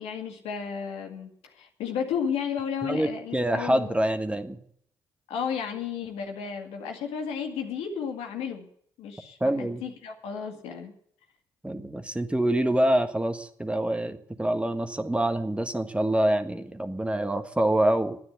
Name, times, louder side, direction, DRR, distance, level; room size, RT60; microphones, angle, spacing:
voice 1, 0.0-4.0 5.3-8.7 9.0-10.9, left 7 dB, 75° left, 3 dB, 2.1 m, -33 dB
voice 2, 2.8-4.6 9.4-9.8 11.6-18.2, right 1 dB, 10° right, 7 dB, 1.5 m, -26 dB
12.0 x 9.6 x 8.1 m, 0.65 s
hypercardioid pair, 45°, 11 cm